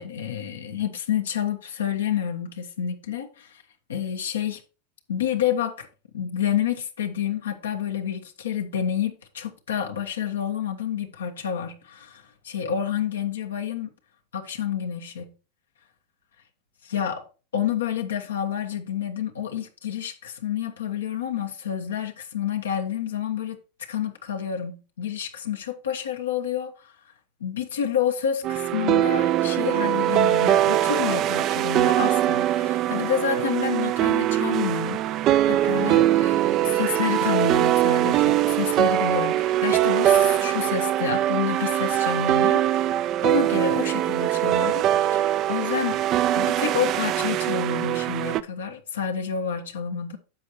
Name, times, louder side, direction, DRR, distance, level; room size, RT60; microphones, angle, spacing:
voice 1, 0.0-3.6 3.9-4.6 5.1-5.9 6.1-13.9 14.3-15.3 16.8-17.2 17.5-23.6 23.9-26.9 27.4-42.9 43.2-46.0 46.4-50.2, left 8 dB, 85° left, 1.3 m, -29 dB
sound 1, 28.4-48.4, right 13 dB, 45° right, 0.5 m, -22 dB
10.5 x 6.8 x 3.0 m
hypercardioid pair, 100°, 0 cm